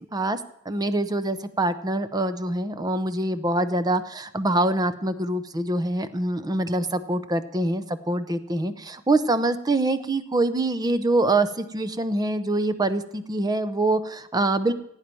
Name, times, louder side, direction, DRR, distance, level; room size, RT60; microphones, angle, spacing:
voice 1, 0.7-14.7, right 2 dB, 20° right, 12 dB, 0.6 m, -25 dB
17.0 x 9.0 x 4.4 m, 0.78 s
head